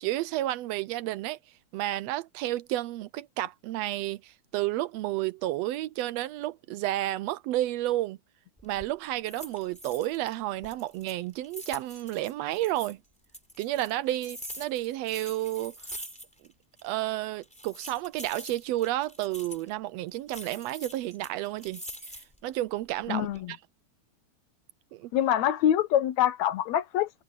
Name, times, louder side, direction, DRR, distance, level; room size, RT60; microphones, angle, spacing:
voice 1, 0.0-1.4 1.7-8.2 8.6-13.0 13.6-15.7 16.8-21.8 22.4-23.3 24.9-25.1, right 15 dB, 80° right, 1.6 m, -31 dB
sound 1, 8.6-8.9 9.3-10.3 10.6-12.9 13.3-16.5 16.8-16.9 17.4-19.7 20.3-22.4 22.9-23.4, equal, ahead, 3.8 m, -44 dB
voice 2, 23.1-23.5 25.1-27.2, left 10 dB, 75° left, 2.2 m, -25 dB
omnidirectional pair, 3.3 m